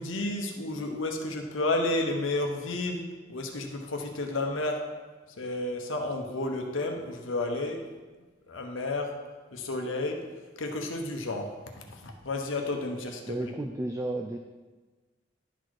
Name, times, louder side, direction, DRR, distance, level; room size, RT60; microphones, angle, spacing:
voice 1, 0.0-3.0 3.3-4.8 5.4-7.8 8.5-9.1 9.5-10.2 10.6-13.5, left 2 dB, 80° left, 3 dB, 1.0 m, -31 dB
voice 2, 13.3-14.4, right 1 dB, 15° right, 4 dB, 0.4 m, -32 dB
11.0 x 4.2 x 4.8 m, 1.3 s
head